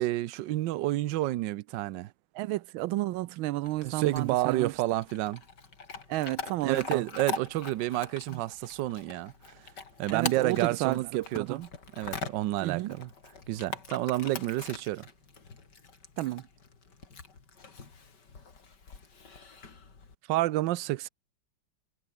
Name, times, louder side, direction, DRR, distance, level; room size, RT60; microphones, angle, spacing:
voice 1, 0.0-2.1 3.8-5.4 6.6-9.6 10.0-13.1 13.5-15.0 20.3-21.1, right 16 dB, 75° right, 1.3 m, -30 dB
voice 2, 2.3-4.7 6.1-7.0 8.3-8.4 10.1-11.6 12.6-12.9 16.2-16.4, right 17 dB, 90° right, 1.4 m, -32 dB
Chewing mastication / Dog, 3.6-20.2, left 5 dB, 60° left, 3.5 m, -43 dB
omnidirectional pair, 2.2 m